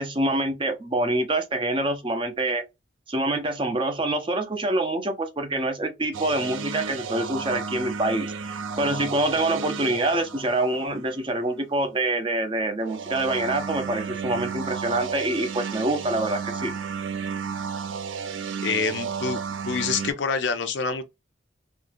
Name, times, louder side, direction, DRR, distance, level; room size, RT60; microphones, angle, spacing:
voice 1, 0.0-2.6 3.1-16.7, right 2 dB, 25° right, 0.5 m, -26 dB
sound 1, 6.1-11.3 12.8-20.1, right 6 dB, 80° right, 0.5 m, -33 dB
voice 2, 18.6-19.4 19.6-21.0, left 5 dB, 65° left, 0.6 m, -26 dB
3.7 x 2.2 x 2.5 m
head